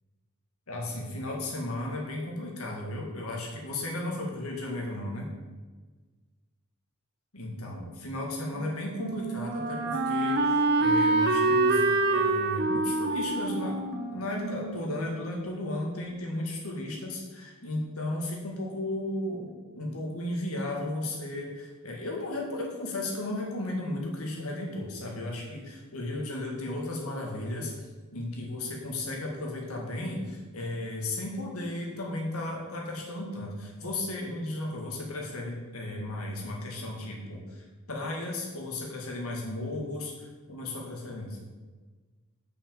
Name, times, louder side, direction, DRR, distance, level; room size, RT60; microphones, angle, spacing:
voice 1, 0.7-5.3 7.3-27.7 28.1-41.4, left 1 dB, 80° left, -1 dB, 2.1 m, -35 dB
Wind instrument woodwind instrument, 8.6-15.4, right 3 dB, 50° right, 0.8 m, -27 dB
6.4 x 6.1 x 7.4 m, 1.3 s
head